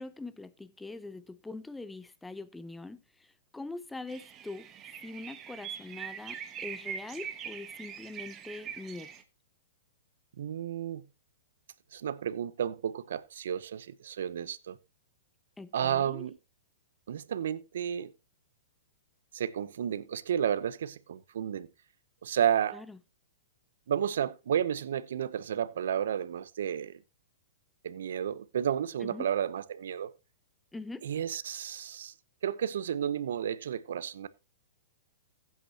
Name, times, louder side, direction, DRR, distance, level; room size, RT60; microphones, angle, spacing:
voice 1, 0.0-4.7 5.0-9.1 15.6-16.3 22.7-23.0 29.0-29.3 30.7-31.0, left 2 dB, 5° left, 0.7 m, -43 dB
sound 1, 4.1-9.2, right 8 dB, 25° right, 1.3 m, -42 dB
voice 2, 10.4-11.0 11.9-14.8 15.7-16.4 17.1-18.1 19.3-21.7 22.2-22.8 23.9-27.0 27.8-30.1 31.0-32.1 32.4-34.3, right 9 dB, 75° right, 0.8 m, -32 dB
15.5 x 8.4 x 2.9 m
hypercardioid pair, 140°, 0 cm